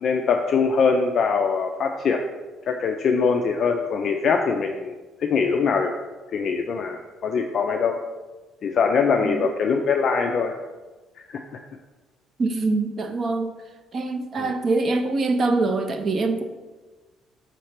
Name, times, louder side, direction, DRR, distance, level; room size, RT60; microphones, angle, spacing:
voice 1, 0.0-2.2 2.7-4.9 5.2-5.9 6.3-8.0 8.6-10.6 11.2-11.4 14.4-14.5, left 5 dB, 40° left, 3 dB, 0.4 m, -22 dB
voice 2, 12.4-13.5 13.9-16.4, right 3 dB, 30° right, 6 dB, 0.5 m, -24 dB
6.4 x 3.2 x 5.7 m, 1.2 s
cardioid pair, 170°, 0 cm